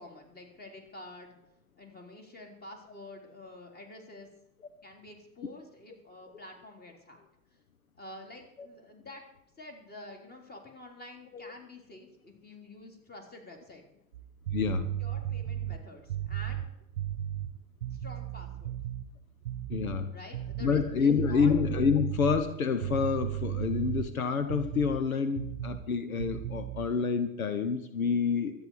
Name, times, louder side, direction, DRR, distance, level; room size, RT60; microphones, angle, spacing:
voice 1, 0.0-1.4 1.8-4.3 4.8-7.2 8.0-9.2 9.6-13.8 15.0-16.7 17.9-18.7 20.1-21.5, left 2 dB, 25° left, 3 dB, 3.7 m, -48 dB
sound 1, 14.1-19.1 19.4-20.0 20.3-25.0 25.4-25.9 26.2-26.9, right 12 dB, 75° right, 0.9 m, -35 dB
voice 2, 14.5-14.9 19.7-20.1 20.6-28.7, left 6 dB, 85° left, 11 dB, 1.1 m, -28 dB
24.5 x 9.2 x 4.8 m, 0.81 s
figure-of-eight pair, 80°, 41 cm